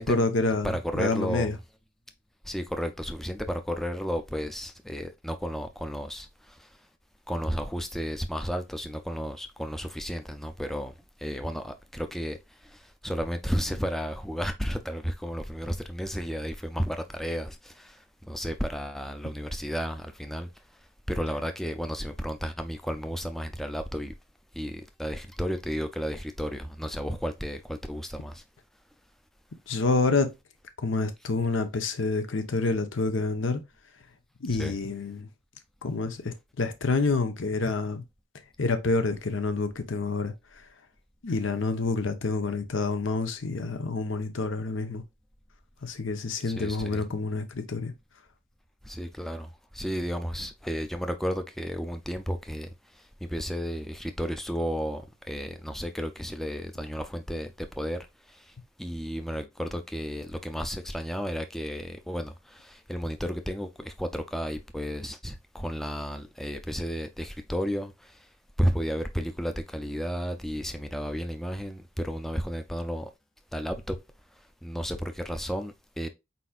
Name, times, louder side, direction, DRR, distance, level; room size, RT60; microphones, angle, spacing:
voice 1, 0.1-1.6 29.7-30.3 30.8-33.6 34.4-35.3 35.8-38.0 38.6-40.3 41.2-45.0 45.8-47.9, left 3 dB, 80° left, 0.8 m, -28 dB
voice 2, 0.6-1.5 2.4-6.7 7.3-10.9 11.2-12.4 12.6-20.5 21.1-24.1 24.5-28.4 34.6-34.8 46.5-47.0 48.8-52.7 52.9-58.5 58.8-68.2 68.6-73.1 73.5-74.0 74.6-76.1, equal, ahead, 0.4 m, -33 dB
4.4 x 4.1 x 2.3 m
head